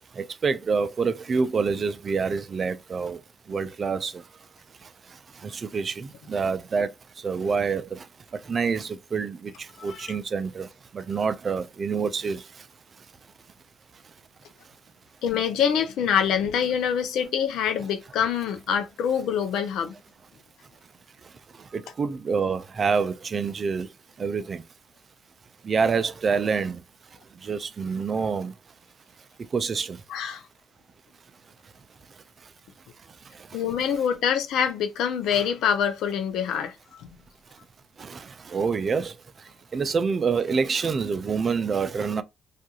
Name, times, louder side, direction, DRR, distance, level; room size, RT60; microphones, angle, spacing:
voice 1, 0.1-4.5 4.8-12.7 21.2-24.6 25.6-26.8 27.3-28.5 29.5-30.0 31.6-31.7 32.4-32.5 33.1-33.6 37.5-37.6 38.0-42.2, right 5 dB, 40° right, 0.3 m, -28 dB
voice 2, 15.2-19.9 30.1-30.4 33.5-37.1, left 8 dB, 85° left, 0.5 m, -25 dB
2.5 x 2.3 x 2.8 m
cardioid pair, 90°, 0 cm